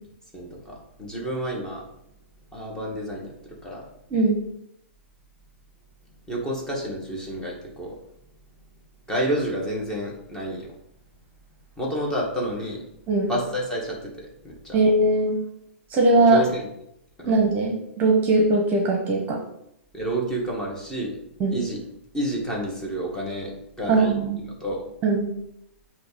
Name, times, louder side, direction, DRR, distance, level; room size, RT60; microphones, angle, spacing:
voice 1, 0.3-1.8 2.5-3.3 3.6-3.8 6.3-7.9 9.1-10.7 11.8-12.8 13.3-14.8 16.3-16.7 17.2-17.4 19.9-21.2 21.5-21.8 22.1-23.5 23.8-24.1 24.6-24.8, right 1 dB, 10° left, -3 dB, 2.0 m, -29 dB
voice 2, 14.7-15.4 15.9-16.4 17.3-19.4 21.4-21.6 23.9-24.4 25.0-25.3, right 2 dB, 25° right, 1 dB, 1.2 m, -20 dB
7.6 x 3.0 x 5.2 m, 0.78 s
figure-of-eight pair, 110°, 7 cm